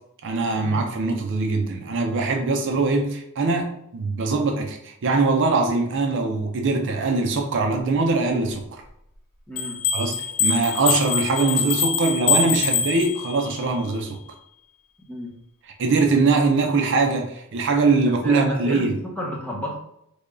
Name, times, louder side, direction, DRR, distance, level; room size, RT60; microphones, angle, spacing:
voice 1, 0.2-8.8 9.9-14.2 15.8-19.0, right 3 dB, 55° right, 0.5 m, -22 dB
voice 2, 9.5-9.8 15.1-15.3 18.0-19.7, left 1 dB, 5° left, 0.8 m, -32 dB
sound 1, 9.6-13.5, left 5 dB, 90° left, 0.9 m, -24 dB
3.3 x 2.2 x 3.8 m
head